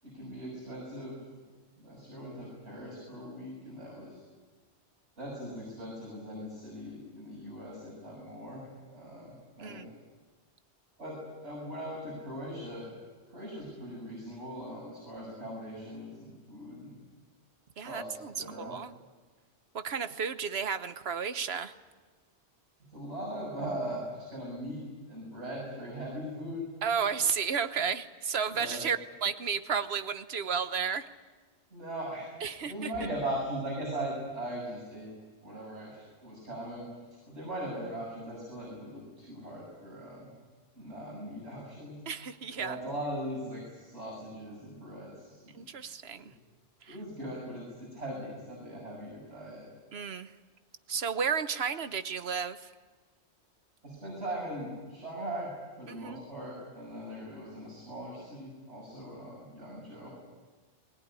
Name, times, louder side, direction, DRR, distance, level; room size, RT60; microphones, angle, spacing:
voice 1, 0.0-1.1 1.8-4.2 5.2-8.6 8.9-9.9 11.0-12.9 13.3-17.0 17.8-18.7 22.9-26.7 28.5-28.8 31.7-35.1 35.4-36.8 37.3-40.3 40.8-42.0 42.5-45.6 46.2-46.3 46.9-49.6 53.8-55.5 55.8-60.1, right 1 dB, 85° right, -4 dB, 7.1 m, -40 dB
voice 2, 17.8-18.9 19.7-21.7 26.8-31.1 32.4-32.9 42.1-42.8 45.5-46.3 46.9-47.0 49.9-50.3 50.9-52.6 55.9-56.2, right 6 dB, 65° right, 11 dB, 1.3 m, -32 dB
21.0 x 20.0 x 9.8 m, 1.4 s
omnidirectional pair, 1.1 m